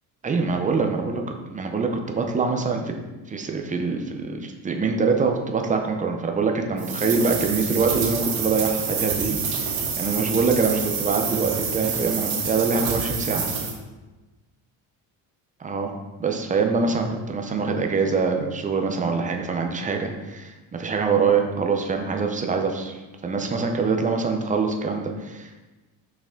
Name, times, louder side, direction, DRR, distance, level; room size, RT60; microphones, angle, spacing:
voice 1, 0.2-1.2 1.5-2.9 3.3-13.4 15.6-15.9 16.2-25.6, right 4 dB, 15° right, 3 dB, 0.6 m, -24 dB
sound 1, 6.8-13.7, right 5 dB, 85° right, 2.5 m, -27 dB
6.6 x 5.8 x 3.7 m, 1.1 s
cardioid pair, 150°, 45 cm